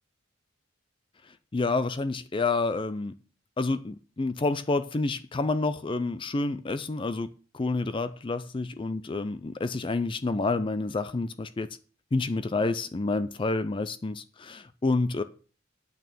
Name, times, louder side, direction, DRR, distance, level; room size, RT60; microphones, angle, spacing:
voice 1, 1.5-3.1 3.6-7.3 7.5-11.7 12.1-15.2, left 3 dB, 25° left, 0.4 m, -28 dB
8.8 x 6.3 x 6.7 m
head